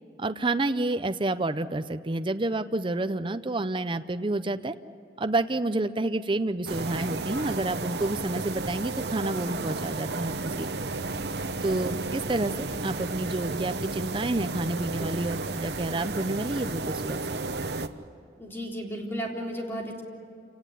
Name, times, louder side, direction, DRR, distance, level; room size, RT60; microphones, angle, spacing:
voice 1, 0.2-4.7 5.2-10.9 11.6-17.2 17.6-17.7, right 2 dB, 30° right, 9 dB, 0.6 m, -29 dB
sound 1, 6.7-17.9, right 3 dB, 75° right, 1.0 m, -33 dB
voice 2, 18.4-20.0, equal, 15° left, -1 dB, 3.7 m, -34 dB
28.0 x 18.5 x 10.0 m, 2.5 s
head